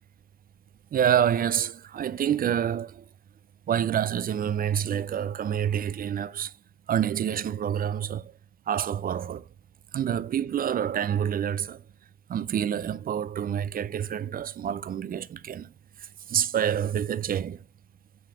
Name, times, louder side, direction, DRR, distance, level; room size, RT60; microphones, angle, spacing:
voice 1, 0.9-3.0 3.7-6.5 6.9-8.3 8.7-9.4 9.9-11.8 12.3-15.7 16.3-17.6, right 9 dB, 45° right, 0.5 m, -27 dB
9.3 x 3.9 x 5.9 m
cardioid pair, 90°, 20 cm